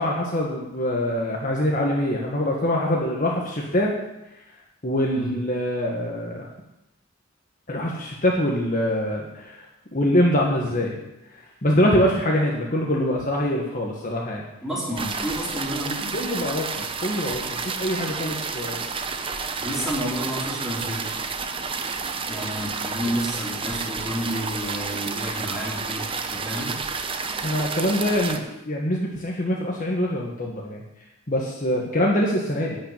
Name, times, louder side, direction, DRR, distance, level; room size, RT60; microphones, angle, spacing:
voice 1, 0.0-3.9 4.8-6.5 7.7-9.6 9.9-11.0 11.6-14.4 16.1-18.8 27.4-30.8 31.3-32.8, equal, 40° left, -2 dB, 1.5 m, -24 dB
voice 2, 14.6-16.1 19.6-21.1 22.3-26.7, equal, ahead, -8 dB, 4.2 m, -30 dB
sound 1, 15.0-28.4, right 4 dB, 25° right, 0.7 m, -30 dB
11.0 x 5.8 x 8.9 m, 0.90 s
head